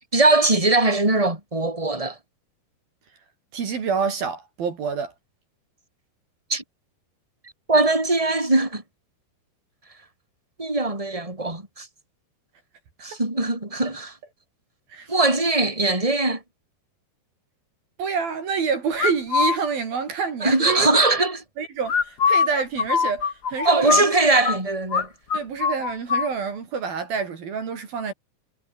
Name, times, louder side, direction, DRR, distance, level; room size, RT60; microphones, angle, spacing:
voice 1, 0.1-2.2 6.5-6.6 7.7-8.8 10.6-11.9 13.0-14.1 15.1-16.4 20.4-21.4 23.6-25.1, right 2 dB, 5° right, 5.9 m, -21 dB
voice 2, 3.5-5.1 14.9-15.1 18.0-20.9 21.6-24.1 25.3-28.1, right 6 dB, 60° right, 5.2 m, -27 dB
sound 1, 19.0-19.6 21.9-24.6 24.9-25.1 25.3-26.3, left 6 dB, 45° left, 1.3 m, -22 dB
omnidirectional pair, 4.7 m